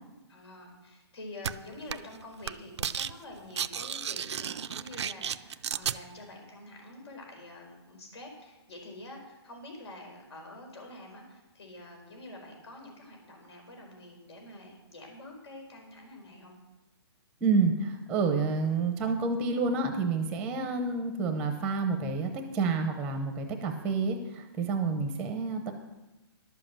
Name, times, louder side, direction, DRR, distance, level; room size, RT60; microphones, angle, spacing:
voice 1, 0.3-16.5, left 1 dB, 75° left, 2 dB, 4.7 m, -47 dB
sound 1, 1.4-1.5 1.9-2.2 2.4-3.1 3.4-6.0, right 8 dB, 85° right, 0.5 m, -33 dB
voice 2, 17.4-25.7, right 4 dB, 5° right, 5 dB, 0.7 m, -29 dB
11.5 x 7.6 x 7.4 m, 1.1 s
hypercardioid pair, 165°, 14 cm